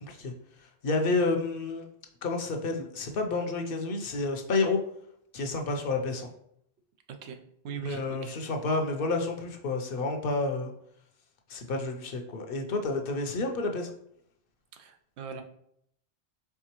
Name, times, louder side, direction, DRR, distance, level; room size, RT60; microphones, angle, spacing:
voice 1, 0.0-0.3 0.8-1.9 2.2-4.8 5.3-6.3 7.8-10.7 11.5-13.9, left 3 dB, 60° left, 4 dB, 0.8 m, -30 dB
voice 2, 7.2-8.4 14.7-15.4, right 6 dB, 85° right, 6 dB, 0.9 m, -41 dB
4.6 x 3.5 x 2.9 m, 0.72 s
omnidirectional pair, 1.1 m